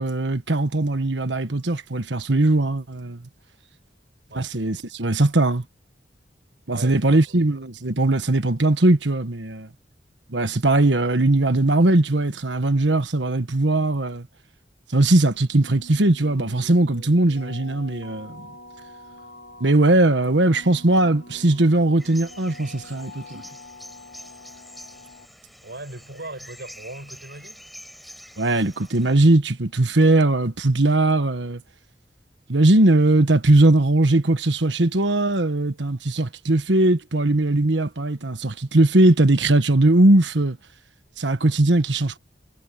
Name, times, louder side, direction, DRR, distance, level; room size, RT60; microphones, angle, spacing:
voice 1, 0.0-3.2 4.4-5.6 6.7-9.7 10.3-14.3 14.9-18.5 19.6-23.4 28.4-31.6 32.5-40.6 41.2-42.2, right 2 dB, 85° right, 1.4 m, -19 dB
voice 2, 6.7-7.4 25.6-27.6, right 2 dB, 70° right, 5.5 m, -39 dB
sound 1, 15.6-25.3, left 1 dB, 85° left, 2.7 m, -45 dB
sound 2, 22.0-29.2, equal, ahead, 5.6 m, -46 dB
head